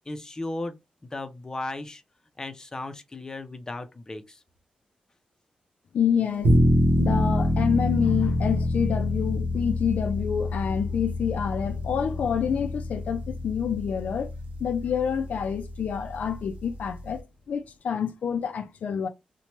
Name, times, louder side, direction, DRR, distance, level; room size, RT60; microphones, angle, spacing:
voice 1, 0.1-0.8 1.1-2.0 2.4-4.4, left 2 dB, 25° left, 0.5 m, -35 dB
voice 2, 5.9-6.5 7.0-14.3 14.6-19.1, left 7 dB, 75° left, 0.3 m, -27 dB
sound 1, 6.4-17.2, left 1 dB, 80° right, 0.7 m, -27 dB
2.9 x 2.2 x 2.9 m
cardioid pair, 95°, 3 cm